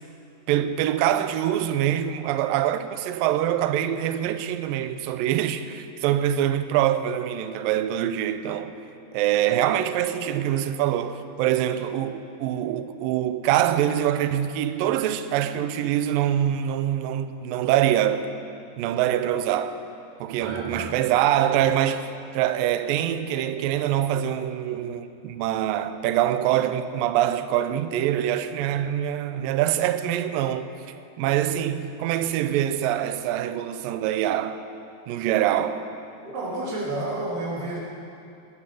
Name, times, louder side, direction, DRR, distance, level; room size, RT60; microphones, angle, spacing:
voice 1, 0.5-8.7 9.1-18.3 18.8-19.8 20.2-30.7 31.2-34.6 35.1-35.9, right 11 dB, 85° right, 2.0 m, -24 dB
voice 2, 20.4-20.9 36.2-37.8, right 2 dB, 55° right, 4.9 m, -30 dB
20.0 x 8.4 x 7.1 m
omnidirectional pair, 4.7 m